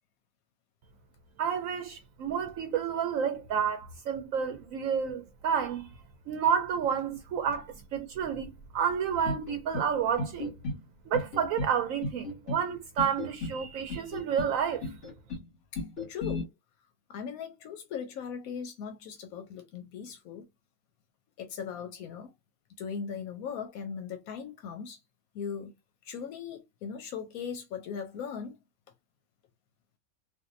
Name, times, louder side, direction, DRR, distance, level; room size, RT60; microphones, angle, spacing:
voice 1, 1.4-5.9 6.3-10.5 11.1-14.9, right 7 dB, 75° right, 0.9 m, -30 dB
sound 1, 9.2-9.9 10.2-10.8 11.1-11.7 12.0-12.6 13.0-13.6 13.9-14.5 14.8-15.4 15.8-16.4, left 2 dB, 55° left, 2.0 m, -34 dB
voice 2, 15.7-16.5 17.1-20.5 21.4-22.3 22.8-25.0 25.3-25.7 26.0-28.6, left 7 dB, 85° left, 1.1 m, -39 dB
3.5 x 2.4 x 2.5 m
omnidirectional pair, 1.5 m